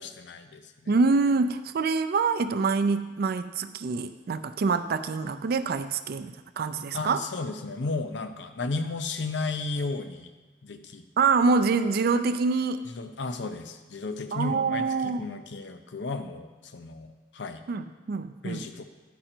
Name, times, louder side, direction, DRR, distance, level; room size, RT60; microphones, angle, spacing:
voice 1, 0.0-0.9 6.9-10.3 10.6-11.0 12.9-17.6 18.4-18.9, left 3 dB, 70° left, 9 dB, 0.6 m, -34 dB
voice 2, 0.9-7.2 11.2-12.9 14.3-15.2 17.7-18.7, right 4 dB, 55° right, 10 dB, 0.4 m, -25 dB
10.0 x 5.0 x 4.4 m, 1.3 s
head